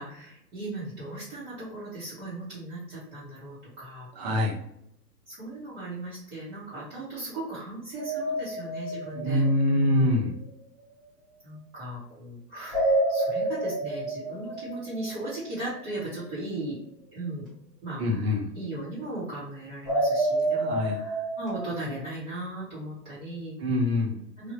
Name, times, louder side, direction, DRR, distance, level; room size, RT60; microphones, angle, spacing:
voice 1, 0.0-4.1 5.3-10.2 11.4-16.8 17.1-17.5 17.8-18.2 18.5-23.6 24.4-24.5, right 2 dB, 20° right, -11 dB, 1.1 m, -37 dB
voice 2, 4.2-4.6 9.1-10.3 18.0-18.5 20.6-21.0 23.6-24.2, left 1 dB, 40° right, 0 dB, 0.8 m, -24 dB
sound 1, 8.0-10.0 12.7-15.6 19.8-22.1, right 1 dB, ahead, 0.9 m, -29 dB
3.3 x 2.4 x 2.7 m, 0.78 s
figure-of-eight pair, 120°, 49 cm